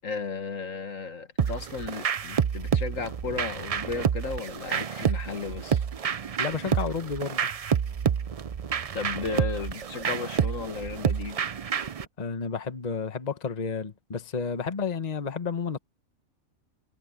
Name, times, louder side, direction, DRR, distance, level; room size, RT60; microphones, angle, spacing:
voice 1, 0.0-5.8 8.9-11.4, left 5 dB, 65° left, 2.0 m, -34 dB
sound 1, 1.4-12.1, right 7 dB, 65° right, 0.3 m, -29 dB
voice 2, 6.4-7.5 12.2-15.8, left 5 dB, 30° left, 1.2 m, -31 dB
omnidirectional pair, 1.4 m